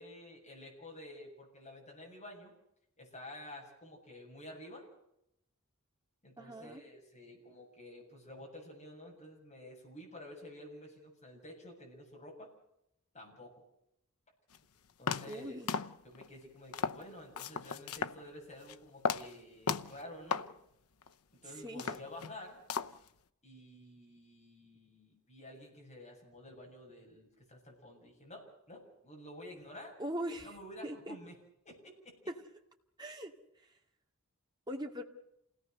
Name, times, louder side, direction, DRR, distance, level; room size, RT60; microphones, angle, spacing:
voice 1, 0.0-2.5 3.0-4.9 6.2-12.5 13.1-13.6 15.0-15.6 16.0-20.5 21.4-22.6 23.4-30.0 30.4-31.3 31.7-32.2, left 1 dB, 30° left, 0 dB, 7.5 m, -51 dB
voice 2, 6.4-6.8 15.3-15.7 21.6-21.9 30.0-30.6 30.8-31.2 32.3-32.4 33.0-33.3 34.7-35.0, right 1 dB, 20° right, 2 dB, 2.3 m, -40 dB
sound 1, 14.5-14.6 15.1-15.4 15.7-16.3 16.7-17.1 17.4-18.2 18.5-18.8 19.0-19.3 19.7-20.0 20.3-20.5 21.0-21.1 21.7-22.4 22.7-23.1, left 5 dB, 85° left, 0.8 m, -35 dB
28.5 x 18.0 x 6.7 m, 0.79 s
head